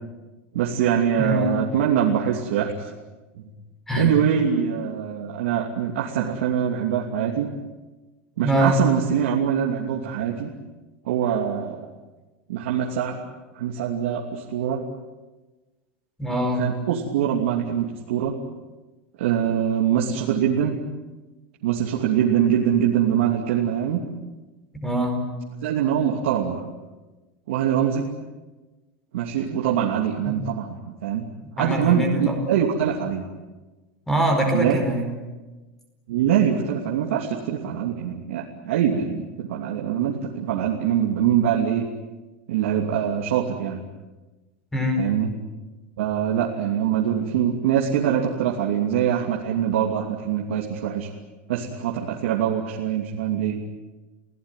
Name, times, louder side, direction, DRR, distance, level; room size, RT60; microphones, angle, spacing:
voice 1, 0.5-2.9 3.4-3.5 4.0-7.5 8.4-10.5 11.0-11.9 12.5-13.2 13.5-14.8 16.6-18.3 19.2-20.8 21.6-24.0 25.6-26.7 27.5-28.1 29.1-30.7 31.0-31.2 31.6-33.2 34.5-34.8 36.1-41.8 42.5-43.8 45.0-45.3 46.0-51.1 51.5-53.6, right 9 dB, 90° right, -2 dB, 2.9 m, -23 dB
voice 2, 1.2-1.6 3.9-4.1 8.4-8.8 16.2-16.7 24.8-25.3 30.2-30.4 31.6-32.4 34.1-35.1 44.7-45.1, equal, 5° left, 4 dB, 4.8 m, -23 dB
29.0 x 17.0 x 9.3 m, 1.2 s
supercardioid pair, 165°, 7 cm